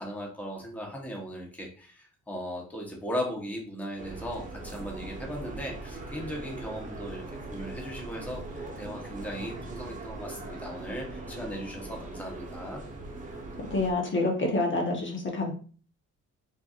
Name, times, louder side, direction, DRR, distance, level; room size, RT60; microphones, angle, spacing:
voice 1, 0.0-12.8, equal, 5° left, -1 dB, 1.1 m, -37 dB
sound 1, 4.0-13.9, right 2 dB, 25° right, 1.0 m, -40 dB
voice 2, 13.7-15.5, left 2 dB, 40° left, 0 dB, 1.1 m, -27 dB
4.4 x 2.7 x 2.5 m, 0.41 s
cardioid pair, 90°, 30 cm